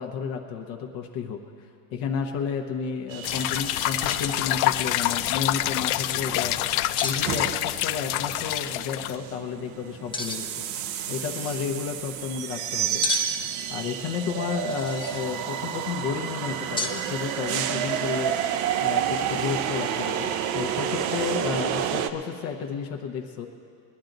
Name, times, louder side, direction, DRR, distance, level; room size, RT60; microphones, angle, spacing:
voice 1, 0.0-6.6 7.0-10.6 11.1-13.0 13.7-18.4 18.8-23.5, left 6 dB, 45° left, 4 dB, 1.0 m, -32 dB
sound 1, 3.1-22.1, right 9 dB, 40° right, 0.6 m, -31 dB
sound 2, 3.2-9.2, left 15 dB, 60° left, 0.5 m, -26 dB
sound 3, 4.1-4.4 4.7-5.2 7.0-7.2 8.2-8.8 10.1-10.6 11.1-11.7 13.0-13.5 14.6-15.4 16.8-17.0, left 4 dB, 10° left, 0.6 m, -33 dB
21.0 x 10.5 x 4.0 m, 2.3 s
supercardioid pair, 155°, 46 cm